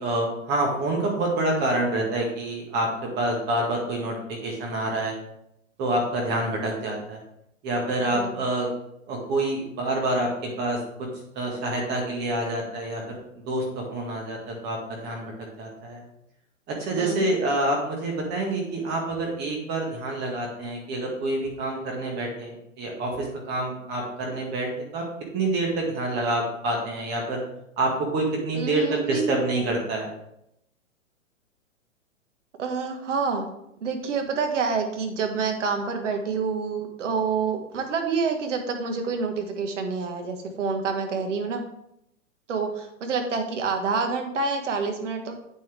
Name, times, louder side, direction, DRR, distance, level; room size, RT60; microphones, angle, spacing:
voice 1, 0.0-2.9 3.2-5.1 5.8-7.2 7.6-8.7 9.1-10.3 10.6-10.8 11.4-13.2 13.5-15.3 15.6-16.0 16.7-25.0 25.3-27.4 27.8-30.1, right 2 dB, 25° right, 0 dB, 1.8 m, -27 dB
voice 2, 17.0-17.3 28.5-29.4 32.6-33.5 33.8-41.6 42.5-45.3, right 5 dB, 65° right, 5 dB, 1.8 m, -27 dB
8.4 x 7.5 x 3.5 m, 0.79 s
hypercardioid pair, 130°, 40 cm